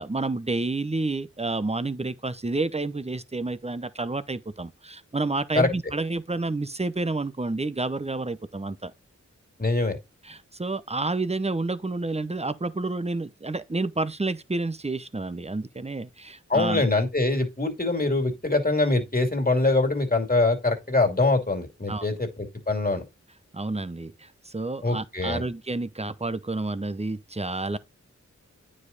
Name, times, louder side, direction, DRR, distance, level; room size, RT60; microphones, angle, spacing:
voice 1, 0.0-8.9 10.2-16.8 21.9-22.2 23.5-27.8, right 2 dB, 20° right, 0.8 m, -29 dB
voice 2, 9.6-10.0 16.5-22.3 22.7-23.0 24.8-25.4, left 2 dB, 30° left, 2.5 m, -23 dB
9.3 x 5.0 x 4.0 m
wide cardioid pair, 45°, 29 cm